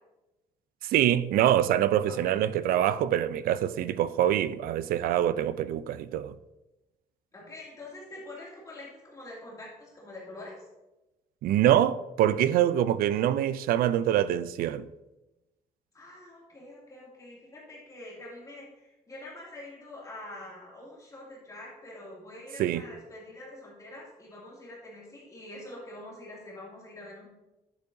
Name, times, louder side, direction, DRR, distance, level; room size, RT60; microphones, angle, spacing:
voice 1, 0.8-6.4 11.4-14.9 22.6-22.8, right 11 dB, 80° right, 0.4 m, -25 dB
voice 2, 2.1-2.4 7.3-10.6 15.9-27.3, left 1 dB, 25° left, 2.4 m, -45 dB
10.5 x 8.2 x 2.7 m
cardioid pair, 130°, 15 cm